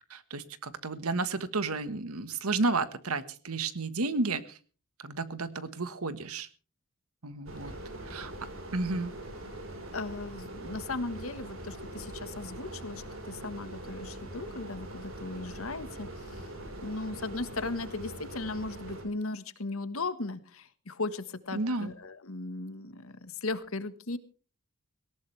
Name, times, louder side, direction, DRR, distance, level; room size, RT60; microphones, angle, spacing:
voice 1, 0.1-4.6 5.0-6.5 7.2-7.7 8.0-8.3 8.7-9.1 10.6-10.7 21.5-21.9, right 3 dB, 80° right, 13 dB, 1.4 m, -32 dB
sound 1, 7.5-19.0, right 1 dB, 65° right, 4.4 m, -42 dB
voice 2, 9.9-16.5 16.8-24.2, left 3 dB, 70° left, 13 dB, 1.5 m, -37 dB
18.5 x 18.0 x 3.3 m, 0.38 s
head